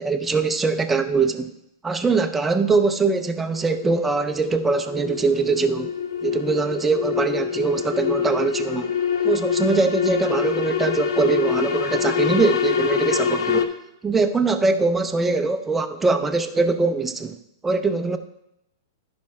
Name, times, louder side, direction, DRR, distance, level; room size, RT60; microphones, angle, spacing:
voice 1, 0.0-1.5 1.8-5.9 6.2-8.9 9.2-13.7 14.0-17.4 17.6-18.2, right 4 dB, 5° right, 6 dB, 0.4 m, -22 dB
sound 1, 3.1-13.6, left 7 dB, 75° left, 0.8 m, -25 dB
11.5 x 5.2 x 4.3 m, 0.83 s
hypercardioid pair, 155°, 2 cm